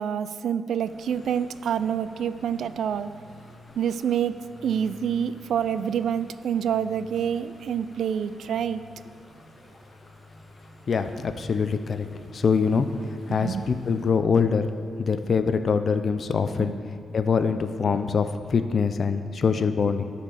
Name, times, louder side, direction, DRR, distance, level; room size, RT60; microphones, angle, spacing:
voice 1, 0.0-3.1 3.8-8.8 12.7-12.8 13.3-13.7 16.6-16.8, right 8 dB, 80° right, 13 dB, 0.3 m, -27 dB
sound 1, 0.8-14.1, equal, 30° left, 1.3 m, -49 dB
voice 2, 10.9-12.9 13.3-14.7 15.0-16.7 17.1-20.1, left 5 dB, 50° left, 9 dB, 0.4 m, -24 dB
11.5 x 4.4 x 6.4 m, 2.3 s
wide cardioid pair, 130°, 0 cm